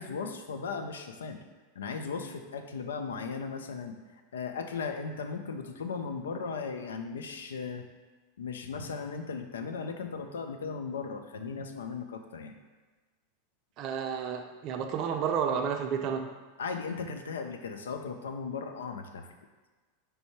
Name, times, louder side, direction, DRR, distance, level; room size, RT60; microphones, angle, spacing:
voice 1, 0.0-1.4 1.8-4.0 4.3-7.9 8.4-12.5 16.6-19.3, left 5 dB, 75° left, 6 dB, 0.4 m, -37 dB
voice 2, 13.8-16.3, right 7 dB, 45° right, 4 dB, 0.5 m, -31 dB
3.3 x 2.6 x 4.4 m, 1.3 s
figure-of-eight pair, 90°, 0 cm